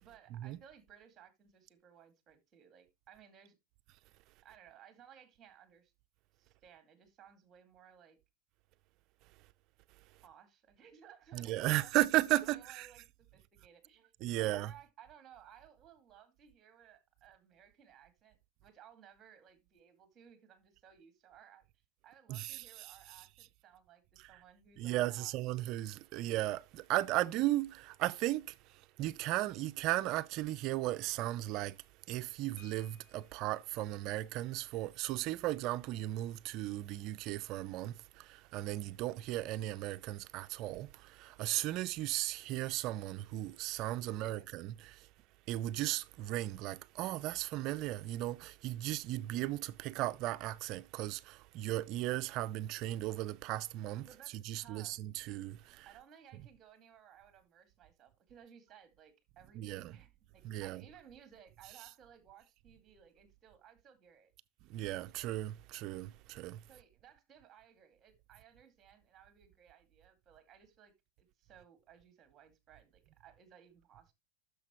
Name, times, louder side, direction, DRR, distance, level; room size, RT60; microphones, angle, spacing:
voice 1, 0.0-3.6 4.4-5.9 6.4-8.2 10.2-12.0 12.3-13.0 13.3-14.1 14.4-21.7 22.0-25.4 44.1-44.5 54.0-55.0 55.9-64.3 66.7-74.1, right 8 dB, 30° right, 2.2 m, -60 dB
voice 2, 11.3-12.9 14.2-14.7 22.3-22.6 24.8-28.5 29.0-31.8 32.1-45.0 45.5-54.1 54.5-55.9 59.6-59.9 60.4-60.8 64.7-66.6, right 16 dB, 50° right, 0.5 m, -36 dB
sound 1, 32.6-33.6 35.1-35.2 35.6-35.7 36.1-36.4, left 7 dB, 45° left, 3.1 m, -63 dB
10.0 x 6.8 x 3.0 m
supercardioid pair, 125°, 0 cm